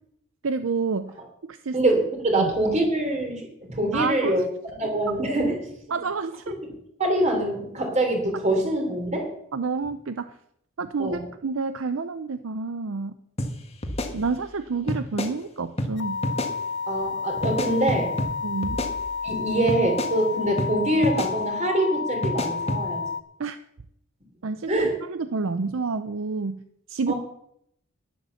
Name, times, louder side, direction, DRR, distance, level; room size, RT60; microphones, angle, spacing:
voice 1, 0.4-1.1 1.4-1.8 2.3-2.5 3.9-4.5 5.9-6.5 9.5-10.4 10.8-13.2 14.1-16.2 18.4-18.8 23.4-23.6 24.4-26.6 26.9-27.1, right 4 dB, 65° right, 11 dB, 0.5 m, -29 dB
voice 2, 1.7-4.4 4.8-5.6 6.5-6.6 7.0-9.3 11.0-11.2 16.9-18.1 19.2-23.0 24.7-24.9 27.1-27.2, right 1 dB, 30° right, 3 dB, 3.3 m, -24 dB
sound 1, 13.4-13.5 13.8-14.6 14.9-15.3 15.8-15.9 16.2-16.5 17.4-18.3 18.6-19.4 19.7-20.1 20.6-20.7 21.0-21.3 22.2-22.8, left 1 dB, 30° left, 1.5 m, -28 dB
sound 2, 16.0-23.2, left 5 dB, 55° left, 0.9 m, -30 dB
11.0 x 11.0 x 7.0 m, 0.73 s
head